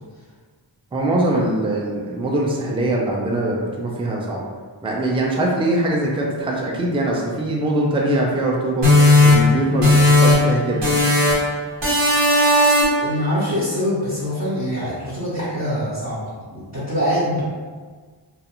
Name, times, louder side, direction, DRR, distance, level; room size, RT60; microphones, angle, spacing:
voice 1, 0.9-4.4 4.8-8.9 9.2-10.8, right 1 dB, 15° right, -2 dB, 0.4 m, -22 dB
sound 1, 8.8-10.5 10.8-11.5 11.8-13.1, left 2 dB, 70° right, 1.0 m, -15 dB
voice 2, 13.0-17.4, equal, 35° right, -11 dB, 0.7 m, -24 dB
2.4 x 2.3 x 2.9 m, 1.5 s
wide cardioid pair, 70°, 45 cm